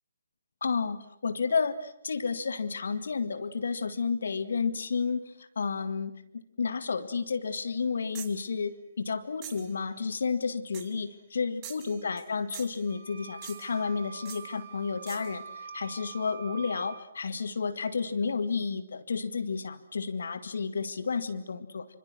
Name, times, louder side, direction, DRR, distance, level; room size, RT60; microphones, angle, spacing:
voice 1, 0.6-21.9, left 5 dB, 60° left, 11 dB, 2.0 m, -31 dB
sound 1, 8.1-8.5 9.4-9.7 10.7-11.0 11.6-12.3 12.5-12.9 13.4-13.8 14.3-14.5 15.1-15.3, right 10 dB, 25° right, 2.4 m, -45 dB
sound 2, 12.9-17.0, right 6 dB, 45° right, 4.0 m, -45 dB
26.5 x 26.0 x 7.7 m, 0.71 s
figure-of-eight pair, 140°, 0 cm